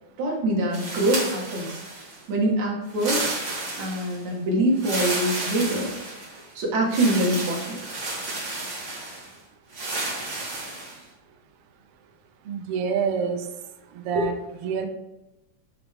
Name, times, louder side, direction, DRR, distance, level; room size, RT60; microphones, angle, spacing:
voice 1, 0.2-1.8 2.3-3.2 3.8-5.9 6.5-7.8, right 1 dB, 65° right, -2 dB, 3.0 m, -24 dB
sound 1, 0.7-2.2 2.9-4.2 4.8-6.4 6.9-9.3 9.7-11.0, right 2 dB, 25° right, 2.2 m, -31 dB
voice 2, 12.5-13.5 13.9-14.9, right 6 dB, 85° right, 6 dB, 1.3 m, -27 dB
9.1 x 5.0 x 3.6 m, 0.99 s
omnidirectional pair, 3.6 m